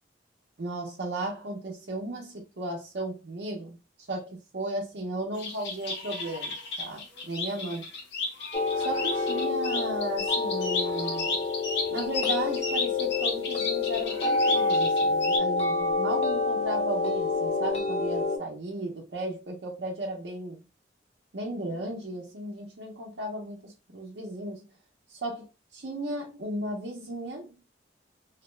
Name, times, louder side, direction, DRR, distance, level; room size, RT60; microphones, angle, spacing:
voice 1, 0.6-3.8 4.1-7.9 8.8-11.3 11.9-20.6 21.3-24.6 25.1-25.5 25.7-27.5, right 1 dB, 70° right, 0.6 m, -35 dB
sound 1, 5.4-15.4, left 3 dB, 75° left, 0.9 m, -33 dB
sound 2, 8.5-18.4, left 3 dB, 35° left, 0.5 m, -27 dB
2.7 x 2.0 x 3.1 m
head